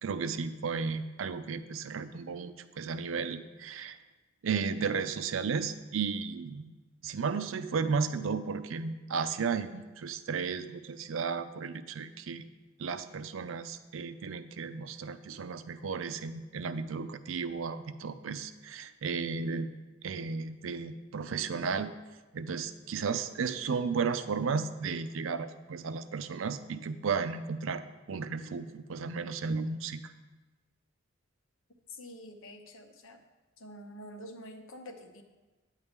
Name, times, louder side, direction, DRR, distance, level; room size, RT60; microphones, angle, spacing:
voice 1, 0.0-4.0 4.4-12.5 12.8-19.7 20.0-21.9 22.3-27.8 28.1-30.1, right 5 dB, 80° right, 12 dB, 0.5 m, -34 dB
voice 2, 31.9-33.2 33.6-35.2, left 1 dB, 85° left, 6 dB, 0.9 m, -47 dB
9.5 x 8.2 x 3.6 m, 1.2 s
head